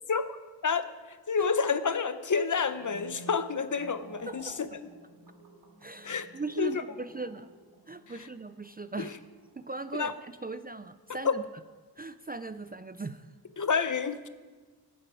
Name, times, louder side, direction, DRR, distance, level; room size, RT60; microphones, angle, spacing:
voice 1, 1.3-4.7 6.0-6.3 6.6-6.8 9.0-9.1 10.0-10.1 11.2-11.3 13.6-14.3, left 5 dB, 50° left, 11 dB, 0.7 m, -28 dB
sound 1, 2.4-10.8 11.1-11.5, right 1 dB, 75° right, 2.4 m, -53 dB
voice 2, 5.8-7.5 7.9-9.2 9.6-11.4 12.0-13.3, right 3 dB, 25° right, 11 dB, 0.4 m, -39 dB
19.0 x 7.6 x 4.8 m, 1.3 s
wide cardioid pair, 90°, 39 cm